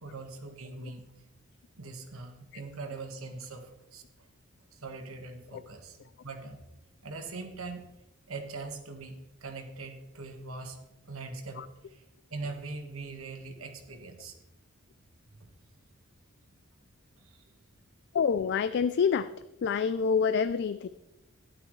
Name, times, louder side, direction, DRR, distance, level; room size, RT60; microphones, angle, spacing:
voice 1, 0.0-1.0 1.8-4.0 4.7-6.6 7.0-7.8 8.3-9.2 9.4-10.8 11.1-11.6 11.9-12.0 12.3-14.3 15.3-15.4 17.2-17.4, right 3 dB, 80° right, 4 dB, 1.5 m, -41 dB
voice 2, 18.1-19.3 19.6-20.9, left 6 dB, 55° left, 13 dB, 0.3 m, -27 dB
13.0 x 11.0 x 3.2 m, 0.93 s
head